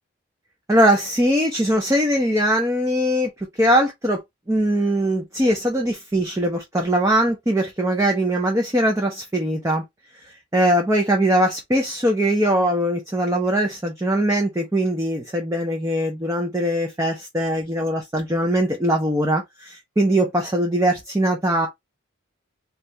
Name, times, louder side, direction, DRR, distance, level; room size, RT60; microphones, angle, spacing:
voice 1, 0.7-4.2 4.5-9.8 10.2-21.7, right 1 dB, 15° right, 0.5 m, -21 dB
2.7 x 2.4 x 3.1 m
head